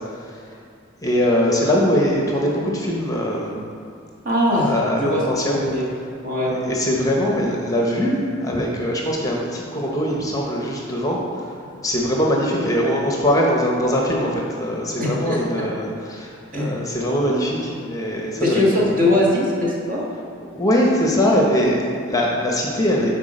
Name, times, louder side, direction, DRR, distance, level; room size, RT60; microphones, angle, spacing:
voice 1, 0.1-0.5 1.0-3.5 4.6-5.6 6.5-18.7 19.0-19.1 20.5-23.1, equal, 15° left, -1 dB, 0.8 m, -22 dB
voice 2, 4.2-4.7 5.0-5.8 6.2-6.7 10.1-10.2 15.0-15.4 16.5-16.8 18.4-20.0, left 1 dB, 45° right, -4 dB, 1.4 m, -21 dB
8.2 x 4.1 x 5.1 m, 2.3 s
head